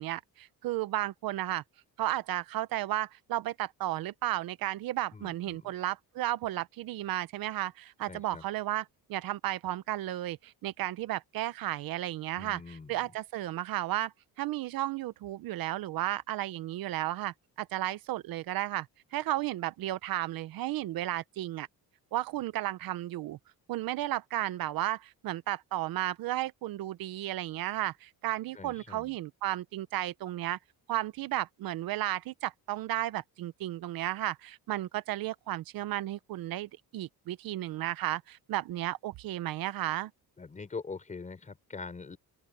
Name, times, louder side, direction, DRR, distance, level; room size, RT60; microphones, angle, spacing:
voice 1, 0.0-1.6 2.0-8.8 9.1-18.9 19.1-21.7 22.1-23.4 23.7-30.6 30.9-40.1, right 15 dB, 65° right, 0.7 m, -33 dB
voice 2, 5.1-5.7 8.1-8.4 12.3-13.0 28.5-29.1 40.4-42.2, left 4 dB, 20° left, 4.6 m, -43 dB
open air
cardioid pair, 175°, 38 cm